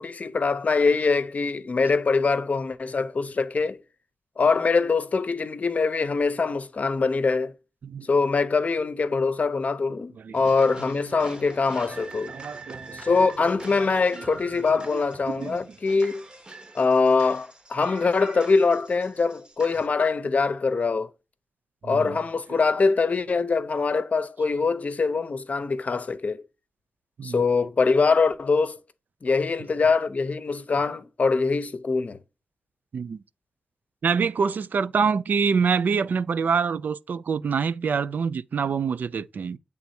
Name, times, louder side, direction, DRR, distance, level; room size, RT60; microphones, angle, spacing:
voice 1, 0.0-3.8 4.4-7.5 8.1-12.3 13.0-16.2 16.7-21.1 21.8-26.4 27.2-28.8 29.2-32.2, left 4 dB, 55° left, 0.7 m, -23 dB
sound 1, 10.3-19.9, right 2 dB, 30° right, 1.0 m, -43 dB
voice 2, 12.3-13.0 15.3-15.6 21.8-22.0 27.2-27.4 32.9-33.2 34.0-39.6, right 6 dB, 75° right, 0.4 m, -25 dB
8.0 x 3.5 x 4.2 m
cardioid pair, 70°, 3 cm